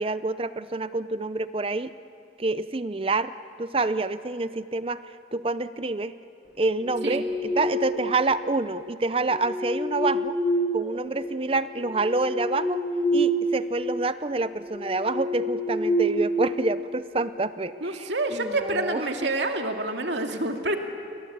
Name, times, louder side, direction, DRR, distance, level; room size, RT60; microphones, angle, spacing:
voice 1, 0.0-1.9 2.4-3.3 3.6-5.0 5.3-6.1 6.6-10.4 10.7-12.8 13.1-19.1, right 3 dB, 30° right, 13 dB, 0.6 m, -27 dB
sound 1, 6.6-8.1 9.1-11.3 11.7-13.6 13.9-14.1 14.6-17.0, right 1 dB, 5° right, 3.1 m, -27 dB
voice 2, 17.8-20.8, right 2 dB, 75° right, 4 dB, 2.3 m, -27 dB
30.0 x 22.0 x 8.7 m, 2.4 s
head